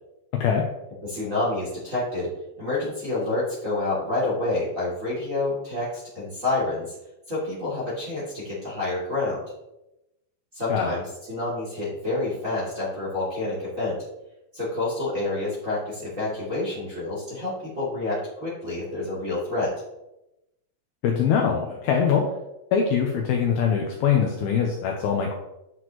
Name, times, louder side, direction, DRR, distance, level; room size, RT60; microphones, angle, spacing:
voice 1, 1.0-2.3 2.6-7.0 7.3-9.4 10.5-14.0 14.5-19.7, left 2 dB, 25° right, -7 dB, 2.2 m, -28 dB
voice 2, 21.0-22.2 22.7-25.4, left 7 dB, 90° left, 1 dB, 2.1 m, -22 dB
11.5 x 6.0 x 3.1 m, 0.90 s
omnidirectional pair, 5.5 m